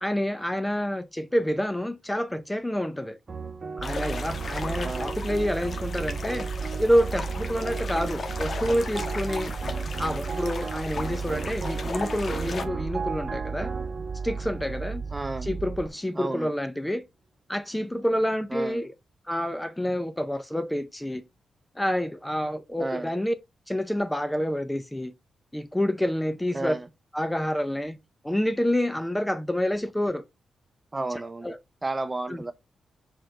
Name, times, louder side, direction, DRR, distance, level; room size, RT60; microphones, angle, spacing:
voice 1, 0.0-3.2 3.8-6.5 6.8-9.5 10.0-13.7 14.2-15.0 15.4-17.0 17.5-18.9 19.3-21.2 21.8-23.3 23.7-25.1 25.5-26.8 27.1-28.0 28.2-30.2 31.4-31.6 32.3-32.4, equal, 10° left, 0.5 m, -28 dB
sound 1, 3.3-15.8, right 5 dB, 45° right, 0.9 m, -37 dB
sound 2, 3.8-12.6, left 4 dB, 50° left, 1.1 m, -37 dB
sound 3, 3.8-15.9, right 5 dB, 60° right, 0.5 m, -35 dB
voice 2, 15.1-15.5 16.2-16.5 18.5-18.8 22.8-23.1 26.5-26.9 30.9-31.5 31.8-32.5, right 2 dB, 20° right, 0.8 m, -32 dB
4.7 x 4.5 x 5.1 m
cardioid pair, 95°, 0 cm